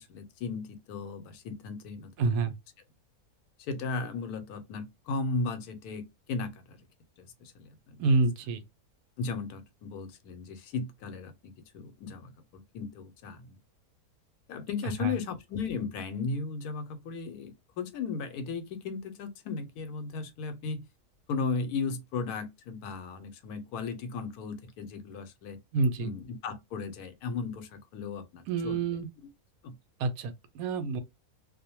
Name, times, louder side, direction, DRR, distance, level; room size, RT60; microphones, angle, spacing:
voice 1, 0.0-2.1 3.6-6.8 7.2-8.0 9.2-13.6 14.5-20.9 21.3-25.6 26.0-28.8 29.6-29.7, left 4 dB, 90° left, 1.2 m, -36 dB
voice 2, 2.2-2.6 8.0-8.6 15.0-15.1 25.7-26.1 28.5-29.1 30.0-31.0, right 3 dB, 75° right, 1.0 m, -27 dB
2.5 x 2.1 x 2.8 m
omnidirectional pair, 1.6 m